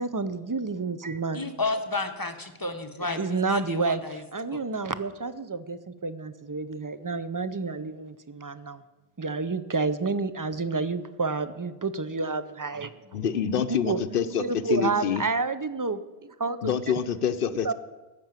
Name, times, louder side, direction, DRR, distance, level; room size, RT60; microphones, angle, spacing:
voice 1, 0.0-1.4 3.0-8.8 9.2-12.9 13.5-14.0 14.4-16.0 16.4-16.6 16.9-17.0 17.6-17.7, right 4 dB, 30° right, 13 dB, 0.3 m, -29 dB
voice 2, 1.3-4.2 4.5-4.6, left 3 dB, 20° left, 7 dB, 0.8 m, -32 dB
voice 3, 13.1-15.2 16.6-17.7, left 7 dB, 65° left, 12 dB, 0.8 m, -27 dB
13.5 x 6.0 x 8.9 m, 1.1 s
omnidirectional pair, 1.0 m